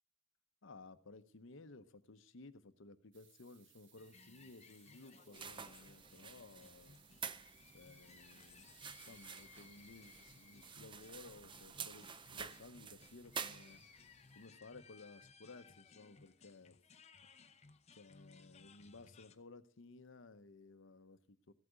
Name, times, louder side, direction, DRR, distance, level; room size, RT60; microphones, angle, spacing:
voice 1, 0.6-7.0 7.7-8.8 9.1-16.8 18.0-21.5, left 3 dB, 65° left, 0.8 m, -57 dB
sound 1, 3.1-12.7, right 7 dB, 65° right, 1.5 m, -68 dB
sound 2, 4.0-19.4, left 5 dB, 35° left, 0.7 m, -62 dB
sound 3, 5.3-14.1, right 6 dB, 25° right, 0.5 m, -50 dB
15.0 x 8.4 x 5.0 m
head